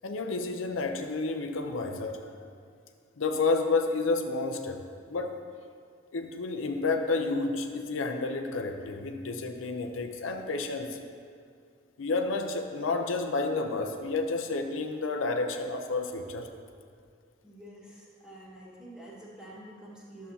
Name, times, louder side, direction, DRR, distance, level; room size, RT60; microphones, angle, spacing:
voice 1, 0.0-2.4 3.2-4.8 5.1-5.4 6.1-11.0 12.0-16.5, left 3 dB, 90° left, 4 dB, 0.6 m, -30 dB
voice 2, 17.4-20.3, right 1 dB, 5° right, -7 dB, 1.5 m, -48 dB
11.0 x 7.1 x 2.8 m, 2.3 s
head